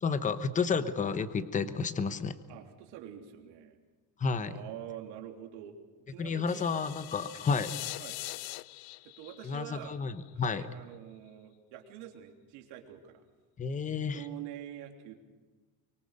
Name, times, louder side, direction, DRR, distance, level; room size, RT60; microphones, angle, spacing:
voice 1, 0.0-2.3 4.2-4.5 6.2-7.8 9.4-10.7 13.6-14.2, left 5 dB, 15° left, 11 dB, 1.0 m, -31 dB
voice 2, 2.5-3.8 4.4-5.7 6.1-6.7 8.0-8.2 9.0-10.0 10.3-13.2 14.1-15.1, right 11 dB, 65° right, 3 dB, 3.4 m, -46 dB
sound 1, 6.5-10.5, left 20 dB, 60° left, 0.6 m, -43 dB
24.5 x 23.0 x 6.6 m, 1.3 s
cardioid pair, 150°, 43 cm